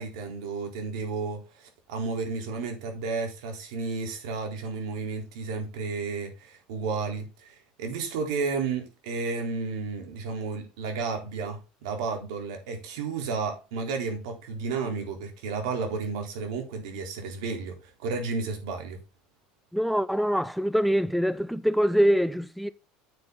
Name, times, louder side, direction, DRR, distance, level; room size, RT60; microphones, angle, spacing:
voice 1, 0.0-19.0, right 4 dB, 85° right, 3.9 m, -32 dB
voice 2, 19.7-22.7, equal, ahead, 0.4 m, -24 dB
9.5 x 6.8 x 3.9 m
cardioid pair, 155°, 3 cm